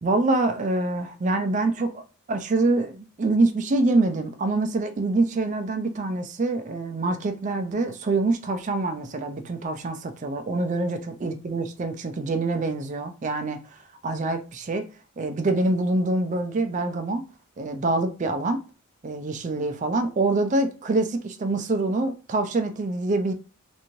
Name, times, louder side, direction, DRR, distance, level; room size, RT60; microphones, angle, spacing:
voice 1, 0.0-2.0 2.3-14.9 15.2-17.2 17.6-18.6 19.0-23.3, right 2 dB, 35° right, 0.3 m, -25 dB
3.0 x 2.5 x 2.7 m
head